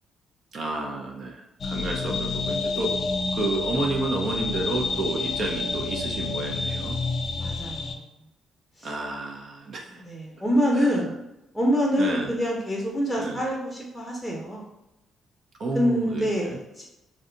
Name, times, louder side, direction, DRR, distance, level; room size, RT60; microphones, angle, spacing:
voice 1, 0.5-2.9 3.3-7.0 8.8-10.0 10.7-11.0 12.0-12.4 13.2-13.4 15.6-16.6, right 2 dB, 55° right, 1 dB, 0.6 m, -30 dB
sound 1, 1.6-7.9, left 3 dB, 50° left, 0.5 m, -29 dB
voice 2, 7.4-8.0 8.8-8.9 10.0-11.2 11.5-14.6 15.7-16.8, equal, 5° right, -4 dB, 0.7 m, -26 dB
2.6 x 2.3 x 3.8 m, 0.91 s
cardioid pair, 90°, 0 cm